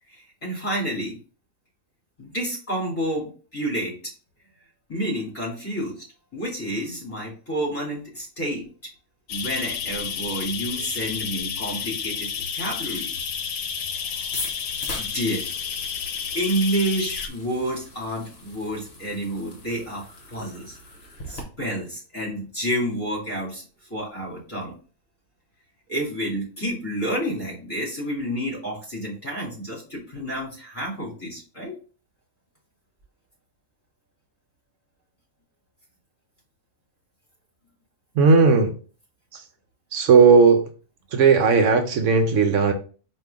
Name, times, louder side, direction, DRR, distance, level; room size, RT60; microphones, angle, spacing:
voice 1, 0.1-1.2 2.2-3.9 4.9-5.9 6.3-8.7 9.3-13.1 15.0-15.5 16.3-20.8 21.3-23.6 23.9-24.7 25.9-31.8, right 1 dB, 20° left, 2.6 m, -29 dB
sound 1, 9.3-17.3, left 7 dB, 85° left, 1.1 m, -31 dB
sound 2, 14.3-21.4, left 2 dB, 50° left, 1.2 m, -40 dB
voice 2, 38.1-38.8 39.3-39.5 39.9-40.7 41.1-42.7, right 5 dB, 65° right, 0.9 m, -16 dB
4.6 x 2.7 x 3.6 m
omnidirectional pair, 1.5 m